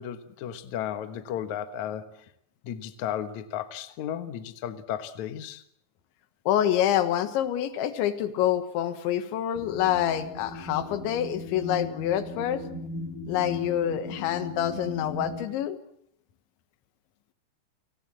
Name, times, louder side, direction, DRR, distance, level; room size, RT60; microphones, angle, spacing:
voice 1, 0.0-2.3 2.6-5.6, left 10 dB, 70° left, 10 dB, 1.8 m, -34 dB
voice 2, 6.5-12.6 13.3-15.8, left 11 dB, 90° left, 11 dB, 3.8 m, -27 dB
sound 1, 9.5-15.5, left 1 dB, 50° left, 3.6 m, -38 dB
30.0 x 18.5 x 7.6 m, 0.71 s
omnidirectional pair, 5.2 m